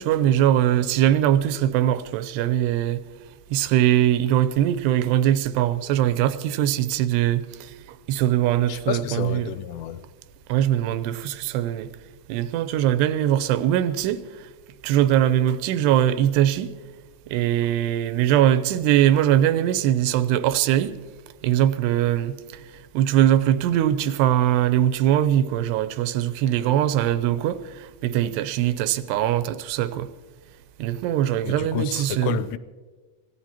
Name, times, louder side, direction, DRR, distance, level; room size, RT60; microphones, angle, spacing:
voice 1, 0.0-3.0 3.5-9.5 10.5-11.9 12.3-14.5 14.8-16.7 17.3-21.0 21.4-22.6 22.9-30.1 30.8-32.4, right 11 dB, 90° right, 2.8 m, -21 dB
voice 2, 8.7-10.0 31.5-32.6, left 10 dB, 90° left, 2.8 m, -30 dB
26.0 x 16.0 x 2.9 m
omnidirectional pair, 4.7 m